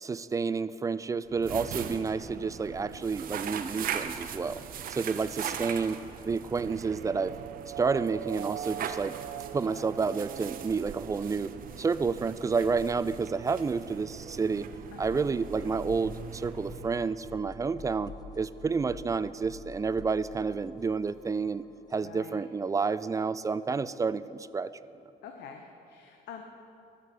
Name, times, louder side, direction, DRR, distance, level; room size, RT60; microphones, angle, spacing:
voice 1, 0.0-4.6 4.9-7.3 7.8-9.2 9.5-11.5 11.8-14.7 15.0-21.6 21.9-24.7, right 5 dB, 20° right, 16 dB, 0.4 m, -30 dB
sound 1, 1.3-17.4, right 8 dB, 55° right, 0.8 m, -40 dB
sound 2, 6.5-12.1, right 11 dB, 75° right, 0.5 m, -41 dB
voice 2, 9.5-9.9 14.9-15.2 22.0-22.4 25.2-26.4, left 7 dB, 75° left, 4 dB, 1.0 m, -46 dB
sound 3, 14.9-22.2, left 5 dB, 20° left, 0.9 m, -48 dB
14.5 x 6.5 x 8.4 m, 2.7 s
cardioid pair, 110°, 17 cm